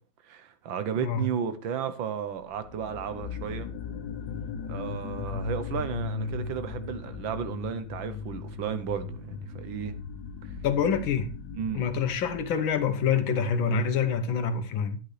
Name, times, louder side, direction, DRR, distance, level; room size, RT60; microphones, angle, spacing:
voice 1, 0.2-3.7 4.7-9.9 10.4-10.5 11.6-11.8, right 7 dB, 75° right, 1.7 m, -33 dB
sound 1, 2.5-13.2, left 6 dB, 60° left, 1.3 m, -38 dB
voice 2, 10.6-11.3 11.7-15.0, left 6 dB, 80° left, 1.8 m, -26 dB
11.0 x 9.1 x 3.3 m
omnidirectional pair, 2.1 m